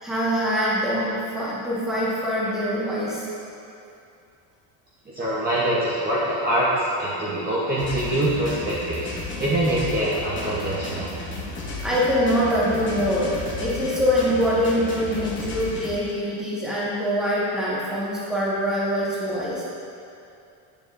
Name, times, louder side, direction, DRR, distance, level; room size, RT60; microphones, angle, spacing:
voice 1, 0.0-3.2 10.5-10.9 11.8-19.6, equal, ahead, -8 dB, 1.5 m, -24 dB
voice 2, 5.1-9.1 9.4-11.1, right 1 dB, 20° right, -9 dB, 1.0 m, -24 dB
sound 1, 7.8-15.9, left 3 dB, 25° left, 1.1 m, -33 dB
8.0 x 6.9 x 2.6 m, 2.6 s
cardioid pair, 140°, 44 cm